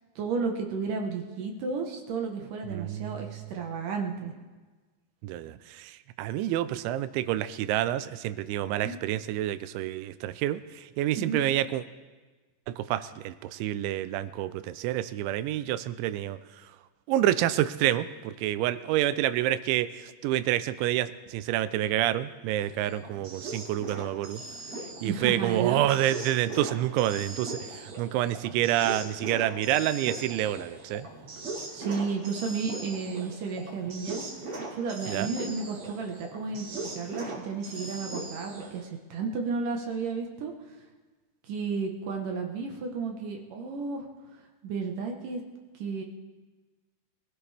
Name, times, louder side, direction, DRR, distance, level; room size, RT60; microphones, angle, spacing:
voice 1, 0.2-4.3 8.8-9.0 11.1-11.4 25.0-25.8 31.7-34.2 34.7-40.5 41.5-44.1 44.6-45.4 45.8-46.0, right 5 dB, 70° right, 1 dB, 2.1 m, -32 dB
voice 2, 2.7-3.3 5.2-11.8 12.7-16.4 17.1-24.4 25.0-31.1 35.1-35.3, right 13 dB, 85° right, 13 dB, 2.9 m, -28 dB
sound 1, 22.6-38.8, right 2 dB, 35° right, 3.0 m, -40 dB
25.5 x 15.5 x 3.4 m, 1.3 s
omnidirectional pair, 5.4 m